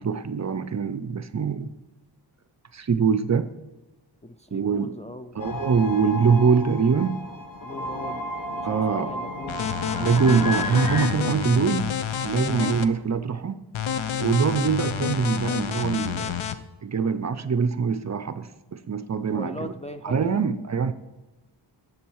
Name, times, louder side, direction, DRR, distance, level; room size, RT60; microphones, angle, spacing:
voice 1, 0.0-1.7 2.7-3.5 4.5-4.9 5.4-7.2 8.6-9.1 10.0-11.9 12.2-13.6 14.2-16.3 16.8-18.5 18.9-19.7 20.0-20.9, right 6 dB, 40° right, 12 dB, 0.5 m, -23 dB
voice 2, 4.2-5.5 7.6-9.8 12.5-12.8 19.3-20.4, left 1 dB, 15° left, 5 dB, 0.4 m, -40 dB
sound 1, 5.4-11.1, left 2 dB, 45° left, 1.0 m, -32 dB
sound 2, 9.5-12.9 13.7-16.6, left 8 dB, 85° left, 0.7 m, -29 dB
10.0 x 7.8 x 4.7 m, 1.1 s
wide cardioid pair, 120°, 46 cm